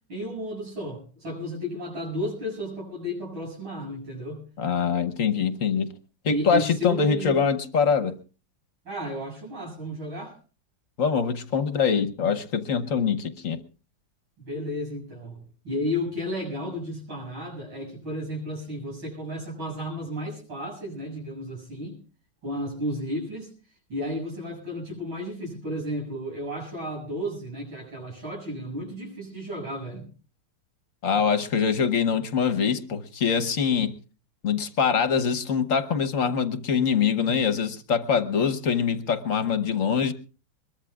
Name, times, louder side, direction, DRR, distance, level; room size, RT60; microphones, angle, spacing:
voice 1, 0.1-4.4 6.3-7.4 8.9-10.3 12.9-13.1 14.4-22.0 22.4-23.5 23.9-30.1, equal, 90° right, -3 dB, 8.7 m, -33 dB
voice 2, 4.6-5.9 6.2-8.2 11.0-13.6 31.0-33.9 34.4-40.1, left 6 dB, 50° left, 11 dB, 1.2 m, -24 dB
22.5 x 22.0 x 2.4 m, 0.37 s
omnidirectional pair, 2.2 m